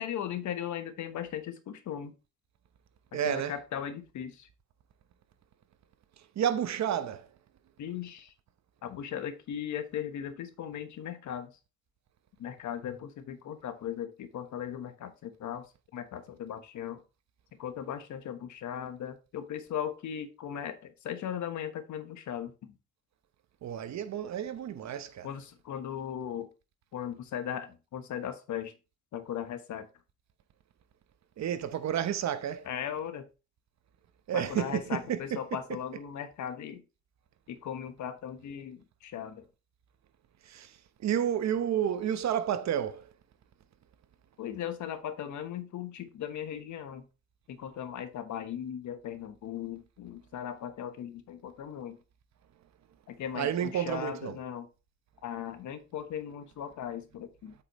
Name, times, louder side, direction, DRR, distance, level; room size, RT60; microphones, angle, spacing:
voice 1, 0.0-2.1 3.2-4.5 7.8-8.3 8.8-11.5 12.4-15.6 15.9-17.0 17.6-22.7 25.2-26.5 26.9-28.7 29.1-29.9 32.7-33.2 34.3-36.8 37.5-39.4 44.4-47.0 47.5-52.0 53.1-54.7 55.2-57.5, left 9 dB, 70° left, 1.2 m, -38 dB
voice 2, 3.1-3.6 6.4-7.3 23.6-25.3 31.4-32.7 34.3-35.8 40.4-43.1 53.3-54.4, right 9 dB, 65° right, 1.0 m, -31 dB
8.1 x 5.6 x 3.1 m
cardioid pair, 90°, 30 cm